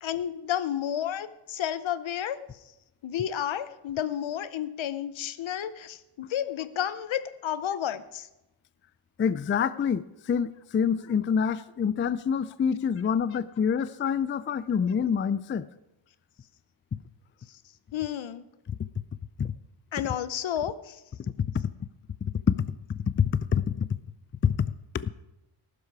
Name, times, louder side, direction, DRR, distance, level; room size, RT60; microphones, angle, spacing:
voice 1, 0.0-2.4 3.0-8.3 17.9-18.4 19.9-21.0, left 10 dB, 70° left, 15 dB, 0.9 m, -31 dB
voice 2, 9.2-15.7 19.4-19.5 21.6-21.7 22.5-22.7 23.2-23.9 24.4-24.5 25.0-25.1, left 7 dB, 25° left, 17 dB, 0.3 m, -26 dB
14.5 x 12.0 x 4.8 m, 0.93 s
wide cardioid pair, 105°, 48 cm